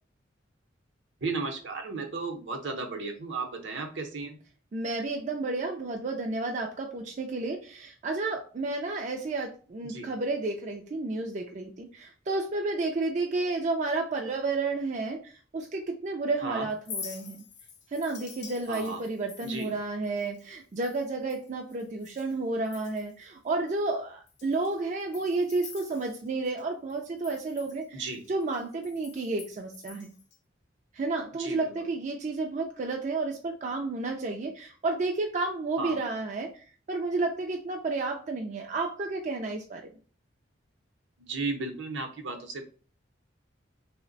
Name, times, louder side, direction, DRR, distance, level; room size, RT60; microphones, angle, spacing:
voice 1, 1.2-4.4 9.9-10.1 16.4-16.7 18.7-19.0 19.4-19.7 27.9-28.2 31.4-31.7 35.8-36.0 41.2-42.6, right 3 dB, 70° right, 5 dB, 0.8 m, -34 dB
voice 2, 4.7-17.4 17.9-30.1 30.9-39.8, right 3 dB, 40° right, 2 dB, 0.4 m, -31 dB
Chink clink, 16.7-22.4 22.6-23.3 23.7-23.8 24.3-26.6 26.9-30.4, left 6 dB, 60° left, 0.7 m, -47 dB
3.2 x 2.1 x 3.8 m, 0.39 s
head